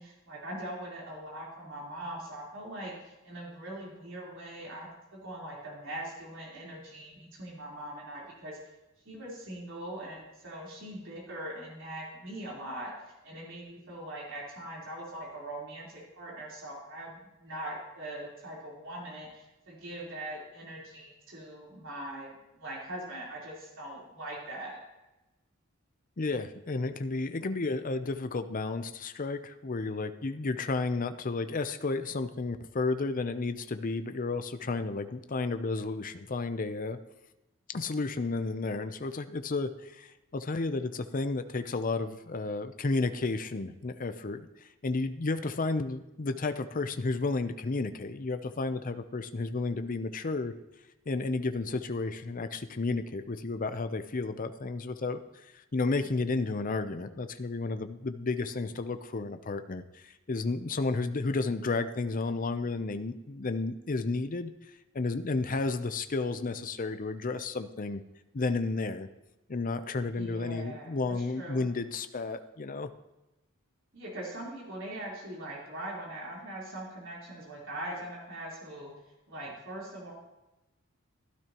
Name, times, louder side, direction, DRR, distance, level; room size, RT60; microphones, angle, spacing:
voice 1, 0.0-2.9 3.2-4.9 5.2-8.6 9.0-12.9 13.2-24.8 70.1-71.7 73.9-78.9 79.3-80.1, right 1 dB, 65° right, -4 dB, 3.9 m, -41 dB
voice 2, 26.2-37.0 37.7-44.5 44.8-50.5 51.1-64.5 64.9-68.0 68.3-69.1 69.5-72.9, left 3 dB, 40° left, 10 dB, 0.6 m, -32 dB
16.0 x 12.0 x 3.0 m, 1.0 s
head